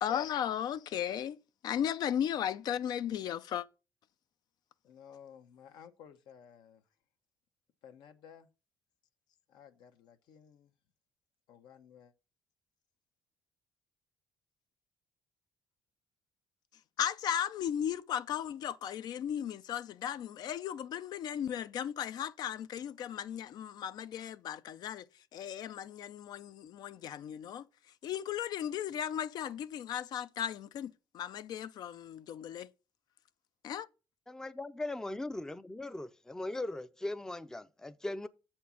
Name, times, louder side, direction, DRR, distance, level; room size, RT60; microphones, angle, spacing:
voice 1, 0.0-1.4 1.6-3.7 17.0-25.1 25.3-27.7 28.0-32.7 33.6-33.9, left 9 dB, 60° left, 0.5 m, -36 dB
voice 2, 4.8-6.8 7.8-8.5 9.5-10.7 11.5-12.1, left 8 dB, 80° left, 1.1 m, -55 dB
voice 3, 34.3-38.3, left 2 dB, 5° left, 0.5 m, -39 dB
7.4 x 4.4 x 7.0 m
cardioid pair, 125°, 8 cm